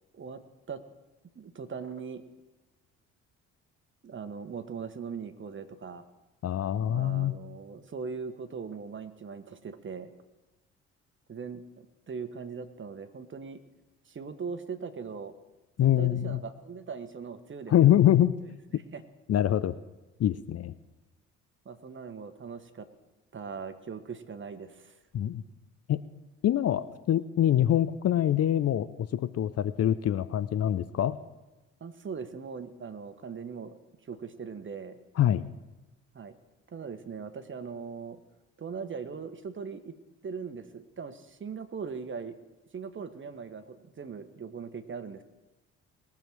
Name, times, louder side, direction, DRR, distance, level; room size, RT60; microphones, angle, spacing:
voice 1, 1.3-2.2 4.0-6.0 6.9-10.1 11.3-13.6 14.1-15.3 15.8-17.7 18.7-19.0 21.6-22.9 23.3-25.0 31.8-33.7 34.0-35.0 36.1-36.3 36.7-38.2 38.6-39.9 40.2-42.4 42.7-45.2, right 5 dB, 35° right, 10 dB, 1.4 m, -40 dB
voice 2, 6.4-7.4 15.8-16.4 17.7-18.4 19.3-19.8 20.2-20.7 25.1-25.4 25.9-26.0 26.4-31.2 35.2-35.5, left 11 dB, 45° left, 15 dB, 0.6 m, -25 dB
21.0 x 7.3 x 4.7 m, 1.1 s
hypercardioid pair, 50°, 34 cm